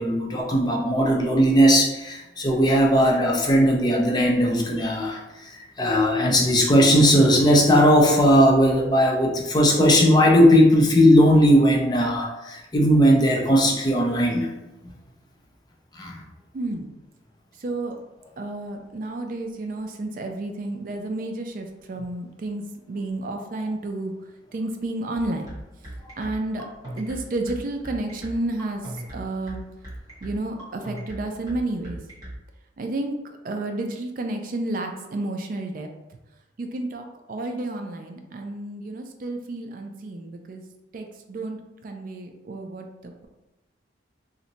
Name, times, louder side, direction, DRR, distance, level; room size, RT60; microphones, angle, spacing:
voice 1, 0.0-5.2 5.5-14.5 16.0-16.1, equal, 20° left, -1 dB, 0.5 m, -18 dB
voice 2, 16.5-16.9 17.6-18.0 18.4-24.1 24.5-25.5 26.2-26.6 26.9-29.6 30.2-32.0 32.8-33.1 33.4-35.9 36.6-40.6 40.9-43.3, right 2 dB, 45° right, 4 dB, 0.3 m, -31 dB
sound 1, 25.2-32.4, right 1 dB, 20° right, 0.9 m, -37 dB
2.7 x 2.1 x 3.9 m, 0.98 s
head